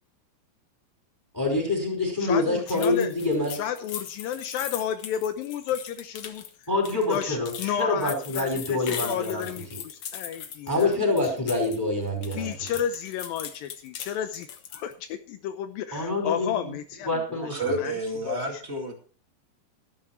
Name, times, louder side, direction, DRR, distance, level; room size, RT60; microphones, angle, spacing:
voice 1, 1.3-3.6 6.7-9.8 10.7-12.5 15.9-16.7 17.1-17.7, left 2 dB, 5° left, 2 dB, 4.5 m, -26 dB
voice 2, 2.2-3.1 3.5-6.7 7.1-11.0 12.3-17.9 18.3-18.4, left 9 dB, 80° left, 9 dB, 2.5 m, -32 dB
sound 1, 2.7-11.8 12.1-14.9, left 8 dB, 60° left, 1.5 m, -39 dB
voice 3, 17.4-18.9, right 1 dB, 25° right, 3 dB, 1.8 m, -30 dB
13.5 x 12.5 x 4.4 m, 0.40 s
omnidirectional pair, 4.2 m